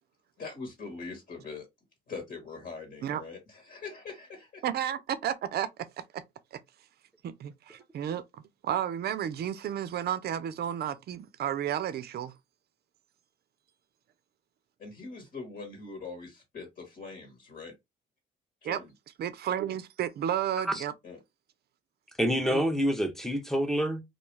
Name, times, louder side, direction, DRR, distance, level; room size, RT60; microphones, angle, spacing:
voice 1, 0.4-1.7 2.1-4.6 14.8-17.7 18.6-18.9 21.0-21.2, left 4 dB, 55° left, 1.3 m, -42 dB
voice 2, 4.6-5.7 6.1-6.2 6.5-6.6 7.2-8.2 8.6-12.3 18.6-18.8 19.2-20.9 22.4-22.6, right 10 dB, 55° right, 0.4 m, -32 dB
voice 3, 22.2-24.0, equal, ahead, 0.6 m, -27 dB
2.3 x 2.3 x 3.1 m
cardioid pair, 90°, 20 cm